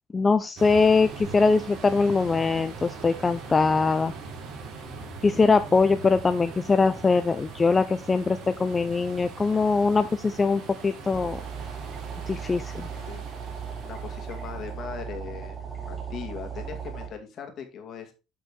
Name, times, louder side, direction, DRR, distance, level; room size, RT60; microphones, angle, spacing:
voice 1, 0.1-4.1 5.2-11.4 12.3-12.9, left 4 dB, 25° left, 11 dB, 0.5 m, -22 dB
sound 1, 0.6-14.8, right 4 dB, 60° right, 3.2 m, -41 dB
sound 2, 11.1-17.1, right 7 dB, 20° right, 2.9 m, -37 dB
voice 2, 13.8-15.6 15.9-18.1, left 7 dB, 50° left, 5 dB, 2.3 m, -39 dB
8.7 x 5.6 x 3.7 m, 0.28 s
supercardioid pair, 105°, 0 cm